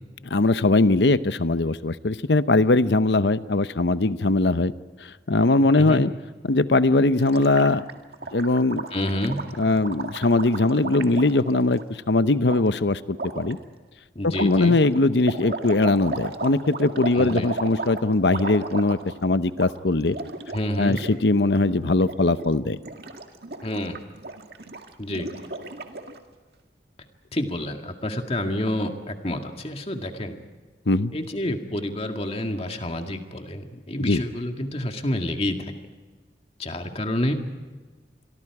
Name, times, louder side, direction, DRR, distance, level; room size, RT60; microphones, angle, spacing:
voice 1, 0.3-4.7 5.3-6.1 6.4-7.8 8.3-8.9 9.6-11.8 12.1-13.0 13.4-13.6 14.2-20.2 20.8-22.8 30.9-31.1 34.0-34.2, left 2 dB, 80° left, 14 dB, 0.8 m, -20 dB
Gurgling, 7.2-11.8 12.5-12.6 13.1-13.5 14.3-19.2 19.5-19.7 20.0-21.1 21.4-21.6 22.0-22.5 22.8-26.2, right 3 dB, 60° right, 2.0 m, -35 dB
voice 2, 8.9-9.4 14.2-14.8 17.1-17.5 20.5-21.0 23.6-24.0 25.0-25.3 27.3-30.4 31.1-35.7 36.6-37.4, left 1 dB, 35° left, 5 dB, 2.0 m, -28 dB
27.5 x 23.5 x 4.9 m, 1.3 s
head